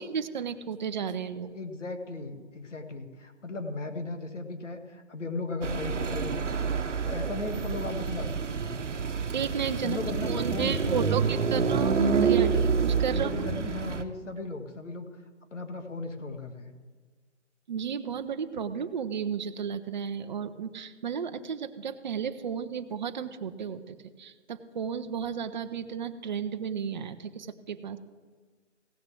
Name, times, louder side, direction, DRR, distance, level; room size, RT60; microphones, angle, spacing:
voice 1, 0.0-1.5 9.3-10.0 10.3-12.5 12.8-13.3 17.7-28.0, right 7 dB, 40° right, 9 dB, 0.7 m, -33 dB
voice 2, 1.5-6.7 7.0-8.7 9.8-11.7 12.2-12.7 13.1-15.1 15.5-16.7, left 2 dB, 80° left, 6 dB, 1.8 m, -36 dB
sound 1, 5.6-14.0, right 6 dB, 80° right, 1.0 m, -28 dB
16.5 x 6.7 x 7.6 m, 1.4 s
figure-of-eight pair, 150°, 36 cm